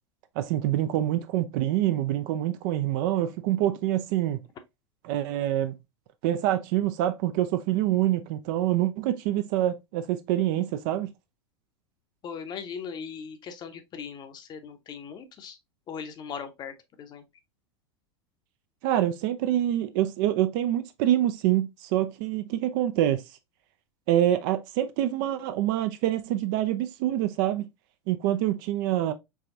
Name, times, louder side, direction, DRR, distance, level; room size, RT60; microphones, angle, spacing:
voice 1, 0.4-4.4 5.0-5.8 6.2-11.1 18.8-23.2 24.1-27.7 28.1-29.1, right 13 dB, 45° right, 0.5 m, -26 dB
voice 2, 12.2-15.6 15.9-17.2, left 6 dB, 30° left, 0.7 m, -39 dB
4.7 x 3.3 x 2.5 m
figure-of-eight pair, 90°, 15 cm